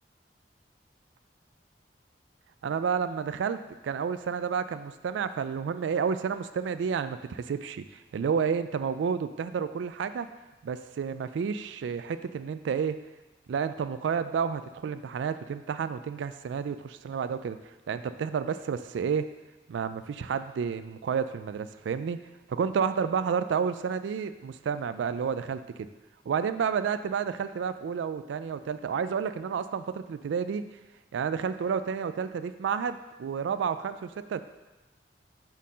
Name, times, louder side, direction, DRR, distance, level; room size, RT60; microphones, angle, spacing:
voice 1, 2.6-10.3 10.6-13.0 13.5-19.3 19.7-22.2 22.5-25.9 26.3-30.6 31.1-34.4, right 6 dB, 85° right, 12 dB, 0.3 m, -30 dB
5.4 x 4.5 x 6.1 m, 1.1 s
head